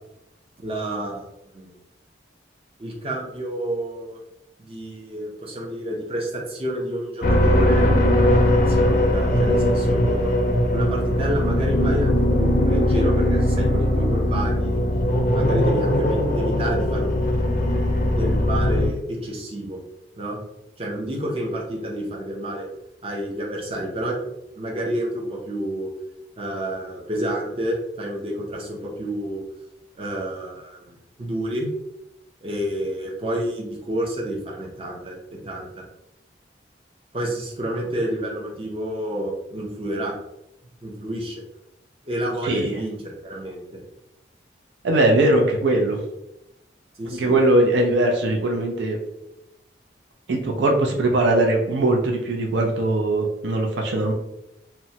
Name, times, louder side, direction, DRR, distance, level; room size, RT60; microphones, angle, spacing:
voice 1, 0.6-1.2 1.5-1.7 2.8-4.2 4.6-7.9 8.7-10.3 10.7-14.8 15.3-17.1 17.4-19.8 20.2-20.4 20.8-22.7 23.0-24.1 24.6-25.9 26.4-29.4 30.0-31.7 32.4-35.8 37.1-40.1 40.8-41.4 42.1-43.8 47.0-47.4, right 1 dB, 30° right, -2 dB, 0.6 m, -29 dB
sound 1, 7.2-18.9, left 1 dB, 45° left, 0.4 m, -20 dB
voice 2, 44.8-46.0 47.1-49.0 50.3-54.1, right 2 dB, 75° right, 2 dB, 0.4 m, -20 dB
2.9 x 2.1 x 2.7 m, 0.85 s
head